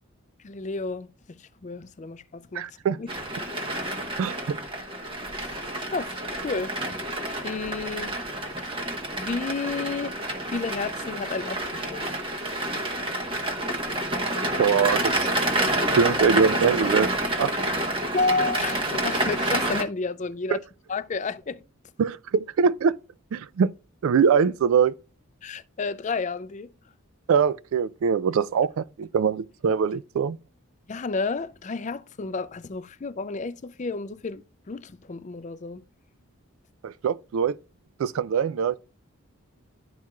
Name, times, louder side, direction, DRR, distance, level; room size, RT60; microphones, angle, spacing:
voice 1, 0.4-2.7 3.0-3.1 5.4-5.6 5.9-6.2 6.4-7.0 7.4-8.2 8.6-8.8 9.2-10.2 10.5-12.2 18.1-20.6 20.9-21.6 25.4-26.7 30.9-35.8, left 3 dB, 35° left, 0.4 m, -31 dB
voice 2, 2.5-3.0 4.2-4.6 14.6-15.3 15.9-17.1 17.4-17.5 20.5-20.6 22.0-23.0 23.3-23.7 24.0-24.9 27.3-30.4 36.8-37.6 38.0-38.8, right 6 dB, 70° right, 0.3 m, -23 dB
sound 1, 3.1-19.8, right 1 dB, 25° right, 1.1 m, -28 dB
12.0 x 4.5 x 2.3 m
head